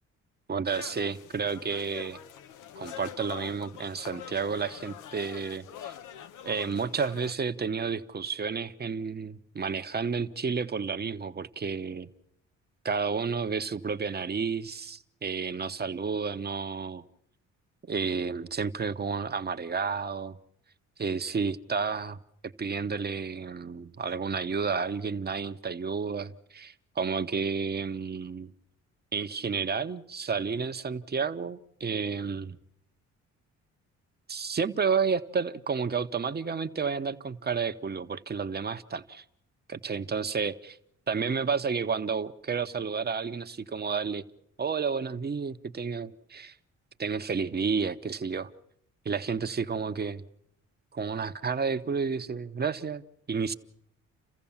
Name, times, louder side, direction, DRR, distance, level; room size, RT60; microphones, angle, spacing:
voice 1, 0.5-2.2 2.8-5.9 6.4-12.1 12.8-17.0 17.8-20.4 21.0-22.2 22.4-28.5 29.1-32.6 34.3-39.2 39.7-40.8 41.1-44.2 44.6-46.5 47.0-48.5 49.0-50.2 50.9-53.0 53.3-53.5, right 5 dB, 35° right, 9 dB, 1.1 m, -31 dB
sound 1, 0.7-7.3, left 10 dB, 85° left, 1.1 m, -44 dB
30.0 x 15.0 x 7.3 m, 0.76 s
cardioid pair, 90°, 30 cm